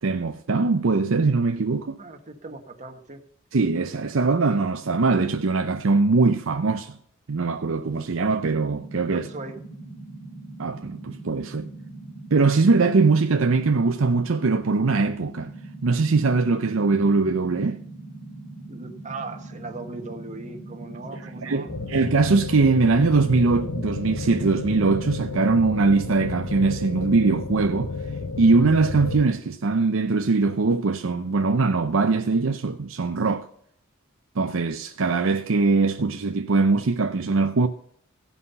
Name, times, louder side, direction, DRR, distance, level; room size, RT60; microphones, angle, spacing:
voice 1, 0.0-2.0 3.5-6.9 7.3-9.3 10.6-11.7 12.3-15.5 15.8-17.8 21.4-27.9 28.4-33.5 34.4-37.7, right 3 dB, 70° right, 0.6 m, -21 dB
voice 2, 2.0-3.2 9.1-9.6 18.7-21.7, right 3 dB, 35° right, 1.5 m, -38 dB
sound 1, 8.2-25.3, right 2 dB, 45° left, 2.4 m, -41 dB
sound 2, 21.7-29.3, left 3 dB, 75° left, 0.9 m, -32 dB
16.0 x 5.6 x 5.6 m
head